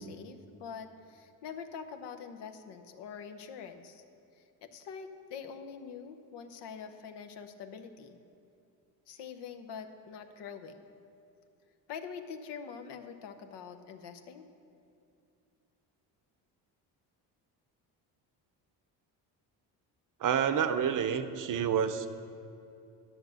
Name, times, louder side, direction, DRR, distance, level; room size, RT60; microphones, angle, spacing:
voice 1, 0.0-4.0 4.6-8.2 9.1-10.8 11.9-14.4, left 6 dB, 70° left, 8 dB, 0.9 m, -45 dB
voice 2, 20.2-22.1, right 8 dB, 45° right, 10 dB, 0.7 m, -29 dB
11.0 x 6.5 x 6.3 m, 2.5 s
supercardioid pair, 85°, 43 cm